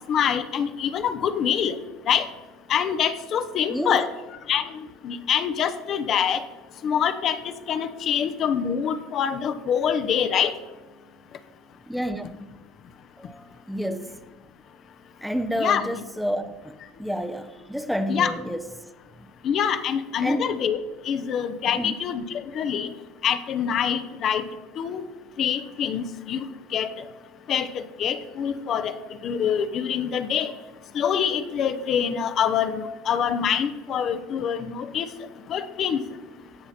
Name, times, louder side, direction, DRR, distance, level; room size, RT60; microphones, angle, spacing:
voice 1, 0.1-1.8 2.1-2.3 2.7-4.1 4.5-4.7 5.0-6.4 6.8-7.4 7.7-10.5 15.6-15.8 18.1-18.3 19.4-20.8 21.0-22.9 23.2-24.4 24.8-25.0 25.4-26.5 26.7-26.9 27.5-28.9 29.2-30.5 30.9-35.1 35.5-36.0, left 8 dB, 45° left, 0.8 m, -25 dB
voice 2, 3.7-4.0 11.9-12.4 13.2-14.2 15.2-18.9 19.2-19.3 20.2-20.6 21.7-22.0, equal, ahead, 0.7 m, -30 dB
16.0 x 5.7 x 4.3 m
hypercardioid pair, 80°, 0 cm